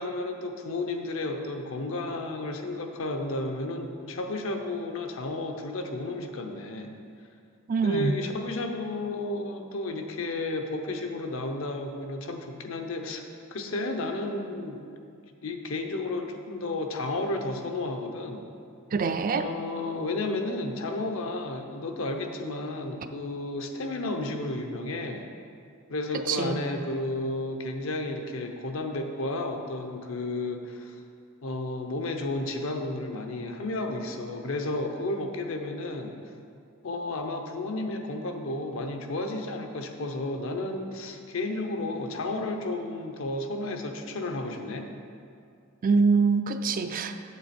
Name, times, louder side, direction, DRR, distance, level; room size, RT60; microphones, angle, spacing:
voice 1, 0.0-6.9 7.8-13.2 13.5-14.9 15.4-18.5 19.4-25.3 25.9-31.0 31.4-36.1 36.8-44.9, left 2 dB, 65° left, 4 dB, 0.8 m, -32 dB
voice 2, 7.7-8.1 18.9-19.5 26.1-26.6 45.8-47.2, right 4 dB, 40° right, 8 dB, 0.4 m, -24 dB
8.2 x 7.3 x 4.3 m, 2.4 s
head